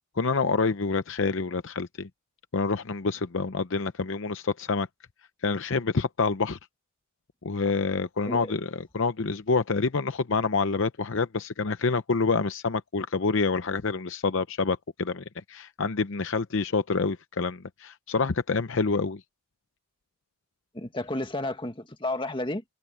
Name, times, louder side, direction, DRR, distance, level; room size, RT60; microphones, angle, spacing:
voice 1, 0.2-2.1 2.5-4.9 5.4-6.6 7.4-19.2, left 4 dB, 60° left, 0.7 m, -27 dB
voice 2, 8.2-8.5 20.7-22.6, left 2 dB, 20° left, 1.9 m, -32 dB
head